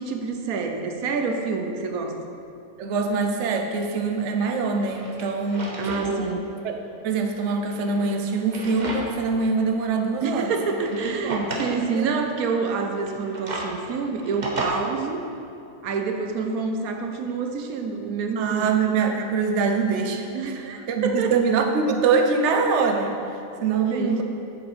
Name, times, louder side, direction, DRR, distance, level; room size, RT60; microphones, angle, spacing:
voice 1, 0.0-2.2 5.8-6.5 10.2-15.2 15.8-18.8 20.3-21.3 23.9-24.2, right 4 dB, 85° right, 4 dB, 1.2 m, -27 dB
voice 2, 2.8-5.7 6.0-6.3 6.6-10.5 11.2-11.5 11.9-12.2 18.4-20.3 20.9-23.2 23.6-24.2, right 4 dB, 60° right, 4 dB, 1.0 m, -24 dB
Drawer open or close, 4.1-4.2 4.7-6.1 6.5-6.6 7.6-9.3 9.7-9.8 10.6-11.8 13.0-14.7, right 2 dB, 35° right, 1.0 m, -34 dB
7.7 x 7.4 x 5.1 m, 2.7 s
omnidirectional pair, 1.5 m